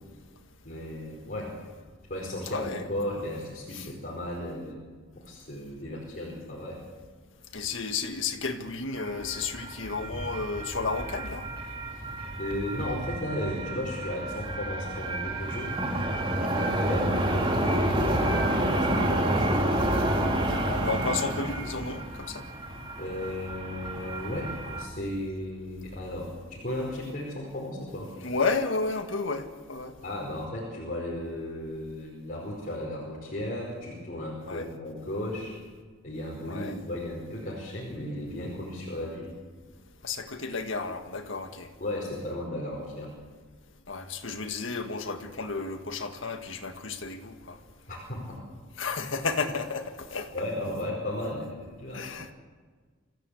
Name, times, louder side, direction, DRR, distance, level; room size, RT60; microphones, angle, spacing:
voice 1, 0.6-1.5 2.1-4.8 5.1-6.8 11.9-12.1 12.4-15.8 16.5-19.5 23.0-28.1 30.0-35.5 36.0-39.3 41.8-43.1 47.9-48.4 50.3-52.1, left 1 dB, 45° left, 5.1 m, -35 dB
voice 2, 2.5-3.2 3.7-3.9 7.5-11.5 16.4-16.7 20.5-22.4 28.2-29.9 34.5-34.7 36.5-36.8 40.0-41.7 43.9-47.6 48.8-50.3 51.9-52.3, left 4 dB, 70° left, 1.9 m, -32 dB
sound 1, 9.0-24.8, right 1 dB, 25° right, 2.8 m, -29 dB
26.0 x 15.5 x 8.5 m
head